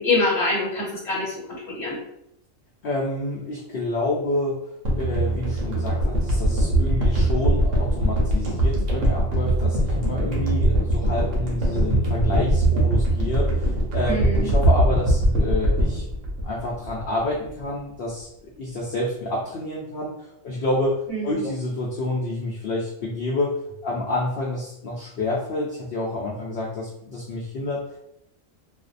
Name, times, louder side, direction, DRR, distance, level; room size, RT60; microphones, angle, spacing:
voice 1, 0.0-2.0 14.1-14.5 21.1-21.5, left 2 dB, ahead, -8 dB, 0.9 m, -25 dB
voice 2, 2.8-4.6 5.0-16.1 16.4-23.6 23.8-28.0, left 2 dB, 65° left, -4 dB, 0.6 m, -28 dB
sound 1, 4.9-17.2 17.5-17.6, right 1 dB, 80° right, 1.1 m, -21 dB
2.6 x 2.1 x 2.5 m, 0.80 s
omnidirectional pair, 1.3 m